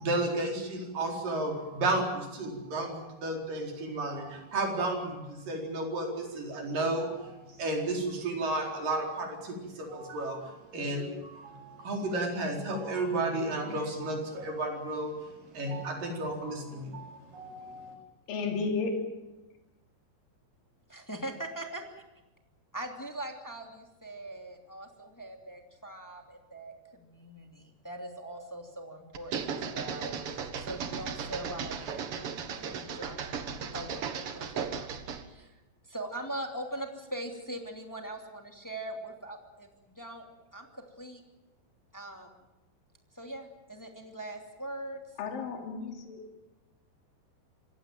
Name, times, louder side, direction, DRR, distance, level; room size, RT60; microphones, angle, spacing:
voice 1, 0.0-18.0, right 2 dB, 50° right, 2 dB, 5.8 m, -33 dB
voice 2, 18.3-19.1 45.2-46.2, left 4 dB, 55° left, 3 dB, 4.4 m, -32 dB
voice 3, 20.9-22.0 22.7-33.4 33.7-34.9 35.3-35.6 35.9-39.7 40.0-40.3 40.5-41.2 41.9-42.3 43.1-45.0, right 1 dB, 5° left, 3 dB, 1.8 m, -41 dB
sound 1, 29.1-35.3, right 6 dB, 65° right, 1.4 m, -36 dB
26.0 x 17.5 x 9.2 m, 1.0 s
omnidirectional pair, 5.0 m